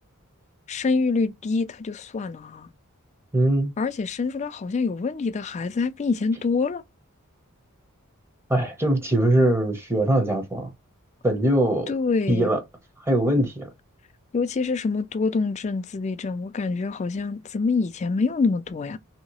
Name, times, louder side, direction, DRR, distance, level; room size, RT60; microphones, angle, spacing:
voice 1, 0.7-2.7 3.8-6.8 11.9-12.5 14.3-19.0, left 4 dB, 30° left, 0.3 m, -26 dB
voice 2, 3.3-3.8 8.5-10.7 11.2-11.9 12.3-12.6 13.1-13.7, right 1 dB, 10° right, 0.7 m, -21 dB
3.0 x 2.8 x 2.9 m
head